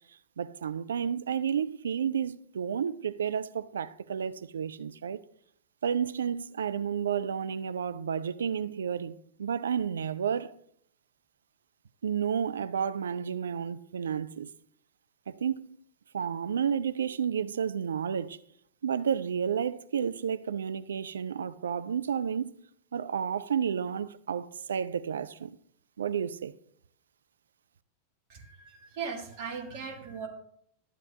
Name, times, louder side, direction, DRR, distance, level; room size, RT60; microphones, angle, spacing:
voice 1, 0.4-5.2 5.8-10.5 12.0-14.5 15.3-15.7 16.1-18.4 18.8-22.5 22.9-25.5 26.0-26.5, right 7 dB, 65° right, 0.3 m, -31 dB
voice 2, 28.3-30.3, right 6 dB, 45° right, 2.0 m, -38 dB
12.5 x 7.5 x 2.6 m
figure-of-eight pair, 90°, 0 cm